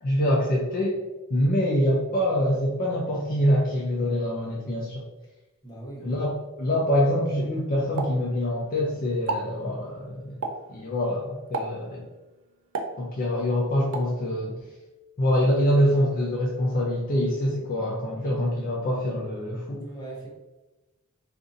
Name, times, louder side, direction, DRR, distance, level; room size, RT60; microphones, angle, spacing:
voice 1, 0.0-1.0 1.3-5.1 6.0-10.4 10.7-12.1 13.0-14.6 15.2-19.8, equal, 45° left, -4 dB, 0.5 m, -25 dB
voice 2, 5.6-6.1 19.7-20.3, right 2 dB, 20° left, -4 dB, 0.9 m, -40 dB
Explosion, 8.0-8.8 9.1-9.6 10.4-10.8 11.5-11.9 12.7-13.4 13.9-14.2, right 3 dB, 70° right, 0.4 m, -32 dB
2.6 x 2.5 x 3.8 m, 1.1 s
head